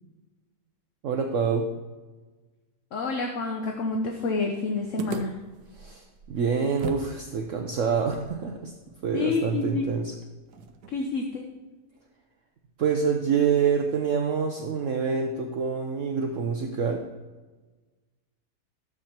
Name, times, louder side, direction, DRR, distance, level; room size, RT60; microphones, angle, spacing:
voice 1, 1.0-1.7 5.8-8.7 9.0-10.1 12.8-17.0, right 6 dB, 60° right, 3 dB, 1.0 m, -26 dB
voice 2, 2.9-5.4 9.1-9.8 10.9-11.4, left 4 dB, 55° left, 3 dB, 1.2 m, -28 dB
sound 1, 5.0-7.1 7.4-7.5 8.1-11.2, right 6 dB, 80° right, 1.3 m, -40 dB
12.0 x 7.4 x 4.4 m, 1.3 s
omnidirectional pair, 1.7 m